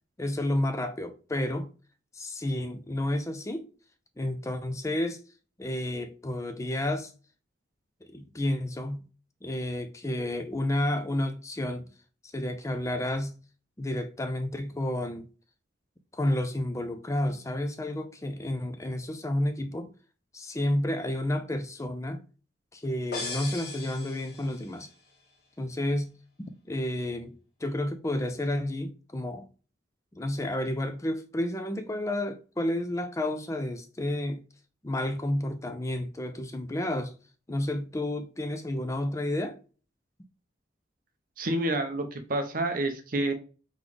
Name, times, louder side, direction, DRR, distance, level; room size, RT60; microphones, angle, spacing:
voice 1, 0.2-1.7 2.1-3.6 4.2-5.2 5.6-7.1 8.1-9.0 9.4-11.8 12.3-13.3 13.8-15.3 16.1-19.9 20.3-22.2 22.7-24.9 25.6-26.1 26.4-27.3 27.6-29.5 30.1-34.4 34.8-37.2 37.5-39.6, left 1 dB, 15° left, 0.5 m, -31 dB
sound 1, 23.1-24.9, left 3 dB, 55° left, 1.4 m, -38 dB
voice 2, 41.4-43.3, right 1 dB, 45° right, 0.6 m, -28 dB
3.9 x 3.6 x 3.3 m
head